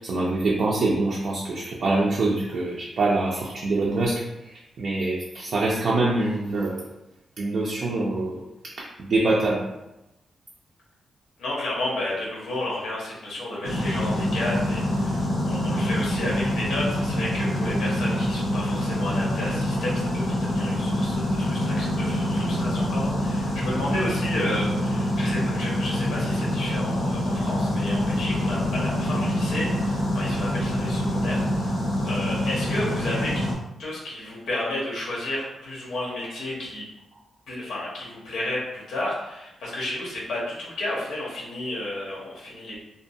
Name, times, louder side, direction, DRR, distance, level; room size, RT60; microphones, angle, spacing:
voice 1, 0.0-6.9 7.4-8.4 9.0-9.6, right 2 dB, 45° right, -4 dB, 0.3 m, -25 dB
voice 2, 11.4-31.8 32.0-33.5 33.8-36.8 37.5-42.8, left 1 dB, 85° left, -4 dB, 0.9 m, -32 dB
sound 1, 13.6-33.5, left 1 dB, 50° left, 0.6 m, -25 dB
2.7 x 2.2 x 2.6 m, 0.90 s
wide cardioid pair, 170°, 0 cm